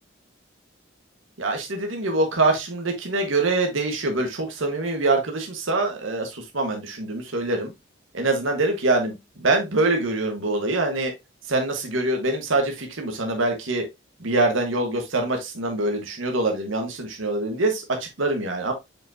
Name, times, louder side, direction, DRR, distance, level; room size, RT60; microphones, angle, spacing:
voice 1, 1.4-7.7 8.1-11.1 11.5-13.8 14.2-18.7, right 2 dB, 80° right, 1.4 m, -24 dB
7.1 x 5.3 x 2.7 m
head